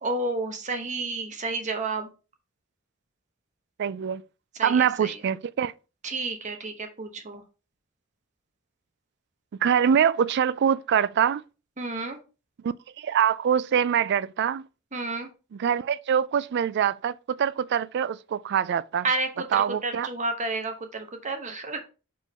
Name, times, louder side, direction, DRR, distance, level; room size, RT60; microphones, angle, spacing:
voice 1, 0.0-2.1 4.6-5.2 6.0-7.4 11.8-12.2 14.9-15.3 19.0-21.8, right 3 dB, 35° right, 0.9 m, -31 dB
voice 2, 3.8-4.2 4.6-5.7 9.6-11.4 12.6-14.6 15.5-19.1 19.5-20.1, right 8 dB, 55° right, 0.3 m, -24 dB
5.0 x 3.7 x 5.4 m
head